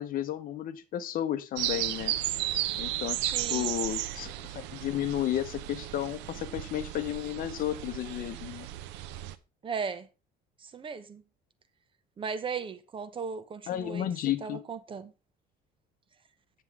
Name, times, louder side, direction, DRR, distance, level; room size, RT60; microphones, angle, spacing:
voice 1, 0.0-2.1 2.7-8.7 13.7-14.6, left 11 dB, 55° left, 1.0 m, -33 dB
sound 1, 1.6-9.3, right 14 dB, 85° right, 0.7 m, -34 dB
voice 2, 3.2-3.8 9.6-10.1 10.6-11.2 12.2-14.1 14.4-15.1, right 5 dB, 30° right, 0.8 m, -37 dB
9.4 x 7.3 x 3.6 m
cardioid pair, 130°, 18 cm